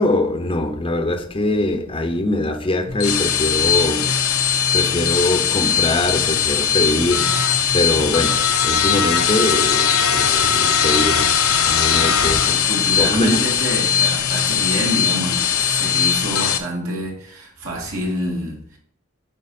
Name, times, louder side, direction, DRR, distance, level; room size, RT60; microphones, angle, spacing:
voice 1, 0.0-4.1 4.7-7.4 7.7-11.4 11.6-12.5 13.0-13.4, left 1 dB, 25° left, 0.6 m, -22 dB
sound 1, 2.9-16.6, left 7 dB, 80° left, 0.7 m, -19 dB
voice 2, 11.9-18.8, equal, 80° right, 2.6 m, -27 dB
8.9 x 4.5 x 4.2 m
head